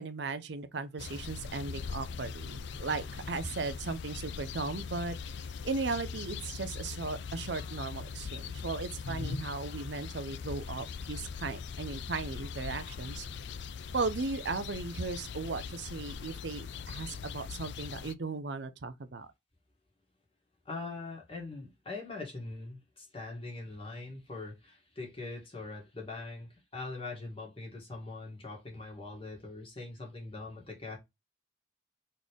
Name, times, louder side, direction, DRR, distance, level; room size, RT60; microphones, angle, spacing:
voice 1, 0.0-5.4 5.6-13.3 13.9-19.3, right 4 dB, 60° right, 0.6 m, -37 dB
sound 1, 1.0-18.1, left 5 dB, 60° left, 0.4 m, -41 dB
voice 2, 20.7-31.0, left 3 dB, 30° left, 1.9 m, -42 dB
4.1 x 3.2 x 3.6 m
head